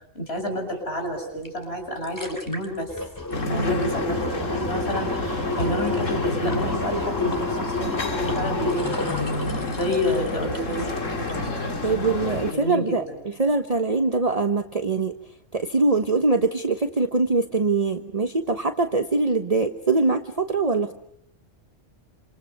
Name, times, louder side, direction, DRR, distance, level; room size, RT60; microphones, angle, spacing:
voice 1, 0.1-2.9 3.5-9.3 9.7-11.5 12.5-13.0, equal, 55° left, 3 dB, 7.6 m, -30 dB
Water in Sink then down Drain, 1.5-1.6 1.9-10.9 11.3-11.4, left 2 dB, 15° left, 3.1 m, -30 dB
sound 1, 3.3-12.5, left 2 dB, 80° left, 2.7 m, -29 dB
voice 2, 3.5-3.8 11.8-15.2 15.5-20.9, right 3 dB, 30° right, 6 dB, 1.3 m, -23 dB
28.5 x 27.5 x 6.8 m, 0.68 s
omnidirectional pair, 1.3 m